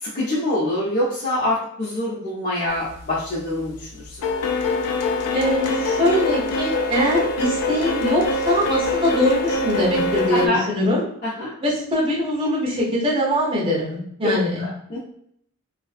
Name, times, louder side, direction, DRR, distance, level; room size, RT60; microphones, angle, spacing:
voice 1, 0.0-4.2 10.3-10.6 11.2-11.5 14.2-15.0, left 1 dB, 40° left, -9 dB, 0.6 m, -25 dB
sound 1, 2.9-3.3 3.6-10.5, left 2 dB, 85° left, 0.4 m, -24 dB
voice 2, 5.3-11.0 11.6-14.6, left 1 dB, 25° right, -6 dB, 0.9 m, -22 dB
2.5 x 2.2 x 2.4 m, 0.67 s
head